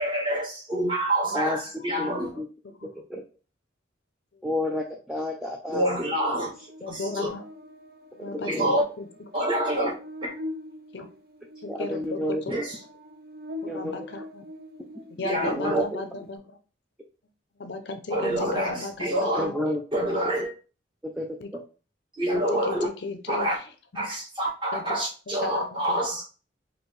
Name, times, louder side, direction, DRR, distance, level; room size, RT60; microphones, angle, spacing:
voice 1, 0.0-2.3 5.7-6.5 6.9-7.3 8.4-8.9 9.3-9.9 10.2-10.3 12.5-12.8 15.2-15.8 18.1-19.5 19.9-20.5 22.1-22.9 23.3-23.6 23.9-26.2, right 1 dB, 25° right, 1.4 m, -27 dB
voice 2, 2.0-2.5 3.1-3.2 4.4-5.8 6.4-6.5 8.5-8.8 11.7-12.6 13.6-14.1 15.4-16.0 19.4-20.0 21.2-21.3 21.5-21.6, left 1 dB, 5° right, 0.4 m, -30 dB
Buzz, 6.1-15.5, left 1 dB, 50° right, 0.6 m, -43 dB
voice 3, 6.8-7.4 8.2-8.7 10.9-11.1 11.6-12.5 13.6-14.4 15.2-16.4 17.6-19.5 21.4-21.5 22.3-23.5 24.7-24.8 25.4-26.0, left 2 dB, 60° left, 0.6 m, -35 dB
4.4 x 2.7 x 3.1 m
head